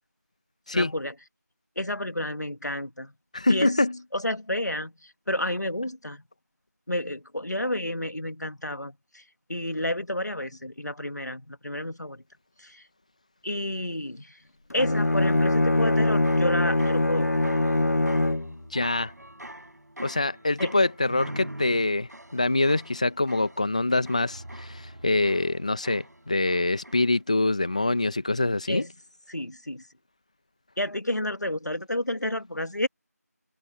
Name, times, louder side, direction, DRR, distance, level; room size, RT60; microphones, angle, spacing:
voice 1, 0.7-1.1 1.8-3.1 3.5-3.7 4.1-6.2 6.9-9.2 9.5-12.2 12.6-12.8 13.4-14.4 14.7-17.3 20.6-20.7 28.7-28.9 29.3-29.8 30.8-32.9, left 1 dB, 85° left, 2.2 m, -30 dB
voice 2, 3.3-4.0 18.7-19.1 20.0-28.8, left 2 dB, 25° left, 1.5 m, -25 dB
Bowed string instrument, 14.7-18.6, left 2 dB, 65° left, 0.7 m, -23 dB
sound 1, 15.7-27.4 27.6-28.2, right 1 dB, 80° right, 5.0 m, -44 dB
figure-of-eight pair, 175°, 9 cm